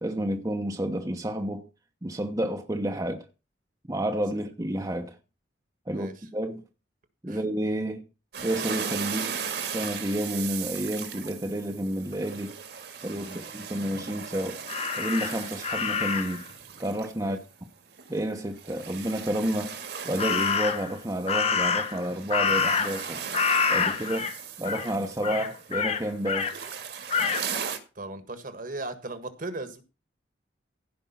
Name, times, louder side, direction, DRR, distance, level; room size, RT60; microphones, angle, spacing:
voice 1, 0.0-1.7 2.0-3.3 3.9-5.2 5.9-6.6 7.2-8.0 8.4-9.4 9.7-12.6 13.0-14.6 15.0-16.4 16.8-17.4 18.1-19.7 20.0-23.2 23.7-24.3 24.6-26.6, right 1 dB, 20° right, 1.0 m, -30 dB
sound 1, 8.3-17.6 17.9-27.8, right 7 dB, 65° right, 2.0 m, -38 dB
Crow, 14.7-16.4 20.2-20.9 21.3-23.1 23.3-24.3 24.6-24.9 25.2-26.5 27.1-27.4, left 5 dB, 35° left, 1.0 m, -27 dB
voice 2, 27.9-29.8, right 2 dB, 45° right, 1.6 m, -37 dB
16.0 x 5.3 x 5.7 m
head